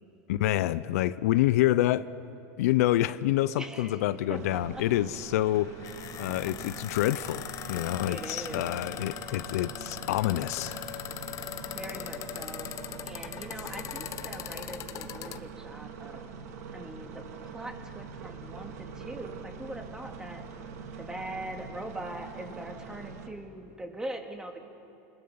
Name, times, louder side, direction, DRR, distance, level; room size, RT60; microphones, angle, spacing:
voice 1, 0.3-2.1 2.6-5.7 6.2-10.8, left 14 dB, 80° left, 16 dB, 0.6 m, -27 dB
voice 2, 3.6-4.0 4.3-4.8 7.8-8.6 11.7-12.7 13.1-16.2 16.7-20.4 21.0-24.6, right 1 dB, 10° right, 4 dB, 2.2 m, -41 dB
sound 1, 4.3-23.3, right 5 dB, 80° right, 2.1 m, -44 dB
sound 2, 5.4-15.4, left 11 dB, 40° left, 0.9 m, -40 dB
28.5 x 19.5 x 5.7 m, 2.8 s
supercardioid pair, 115°, 8 cm